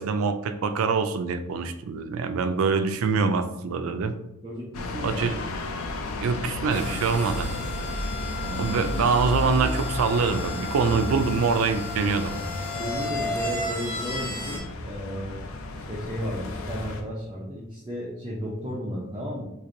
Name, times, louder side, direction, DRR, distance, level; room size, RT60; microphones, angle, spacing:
voice 1, 0.0-4.1 5.0-5.4 6.2-7.5 8.6-12.4, right 5 dB, 75° right, 10 dB, 0.3 m, -24 dB
voice 2, 4.4-5.3 8.4-8.8 12.6-15.4 15.7-19.4, equal, 20° right, -5 dB, 0.5 m, -34 dB
sound 1, 4.7-17.0, left 2 dB, 75° left, 0.4 m, -33 dB
sound 2, 6.7-14.6, left 2 dB, 35° left, 1.1 m, -34 dB
3.1 x 2.5 x 3.8 m, 0.89 s
head